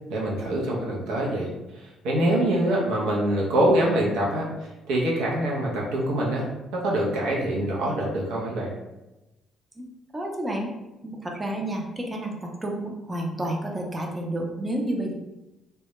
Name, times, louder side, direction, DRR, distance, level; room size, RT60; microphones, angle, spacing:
voice 1, 0.1-1.5 2.0-4.5 4.9-6.5 6.7-8.7, right 1 dB, 85° right, -3 dB, 0.6 m, -24 dB
voice 2, 10.1-10.7 11.0-15.1, right 1 dB, 20° right, 0 dB, 0.4 m, -30 dB
2.1 x 2.1 x 2.8 m, 1.0 s
cardioid pair, 85°, 0 cm